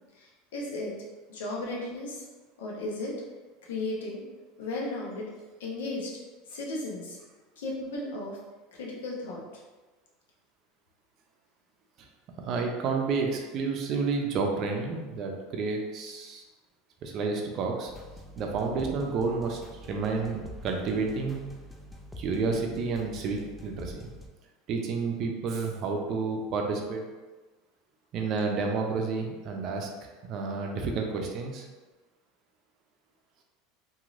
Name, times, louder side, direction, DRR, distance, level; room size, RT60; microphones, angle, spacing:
voice 1, 0.1-0.9 1.3-2.2 2.6-3.1 3.6-4.2 4.6-5.3 5.6-6.1 6.5-7.2 7.6-8.4 8.7-9.6, left 2 dB, 85° left, -3 dB, 0.7 m, -35 dB
voice 2, 12.5-16.4 17.0-17.9 18.4-19.6 19.9-21.4 22.2-24.1 24.7-27.0 28.1-29.9 30.3-31.6, right 4 dB, 50° right, 2 dB, 0.5 m, -30 dB
sound 1, 17.9-24.3, left 1 dB, 5° left, 0.4 m, -46 dB
3.0 x 2.7 x 2.5 m, 1.3 s
supercardioid pair, 110°, 0 cm